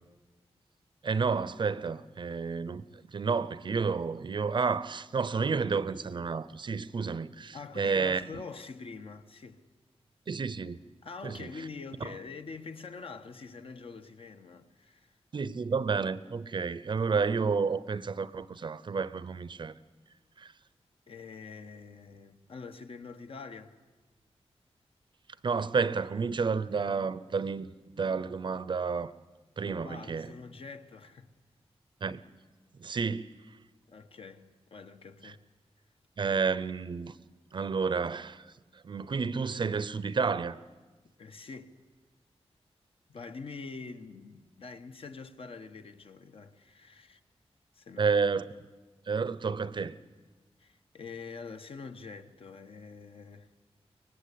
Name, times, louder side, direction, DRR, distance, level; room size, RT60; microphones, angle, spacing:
voice 1, 1.0-2.8 3.1-8.4 10.3-10.8 11.2-11.5 15.3-19.7 20.4-20.5 25.4-27.7 28.0-29.1 29.6-30.3 32.0-32.2 32.8-33.3 35.2-35.3 36.2-37.1 37.5-38.4 38.8-40.6 48.0-48.5 49.1-49.9, right 5 dB, 45° right, 0.6 m, -30 dB
voice 2, 7.5-9.6 11.0-15.2 21.1-23.7 29.6-31.3 33.9-35.4 41.2-41.7 43.1-47.2 47.7-48.1 50.6-53.5, left 4 dB, 60° left, 1.2 m, -45 dB
23.5 x 19.0 x 8.5 m
wide cardioid pair, 165°, 11 cm